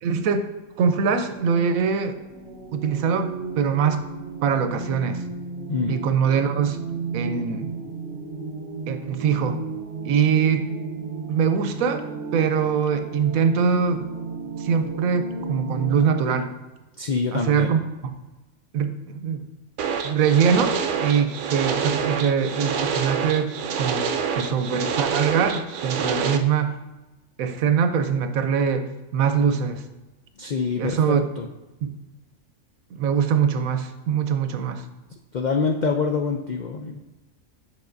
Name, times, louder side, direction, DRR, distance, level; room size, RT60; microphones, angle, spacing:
voice 1, 0.0-0.5 0.8-2.2 2.7-4.0 4.4-5.2 5.9-6.8 7.1-7.7 8.9-9.6 10.0-10.7 11.3-12.0 12.3-14.1 14.6-16.5 17.3-17.8 18.7-19.4 20.0-24.0 24.3-26.8 27.4-29.8 30.8-31.3 31.8-31.9 32.9-34.8, right 6 dB, 90° right, 9 dB, 1.1 m, -23 dB
sound 1, 1.3-16.2, right 4 dB, 55° right, 0.8 m, -34 dB
voice 2, 17.0-17.7 30.4-31.5 35.3-37.0, left 4 dB, 80° left, 3 dB, 0.4 m, -25 dB
sound 2, 19.8-26.4, right 6 dB, 75° right, 0.4 m, -27 dB
8.1 x 5.2 x 2.6 m, 1.1 s
omnidirectional pair, 1.4 m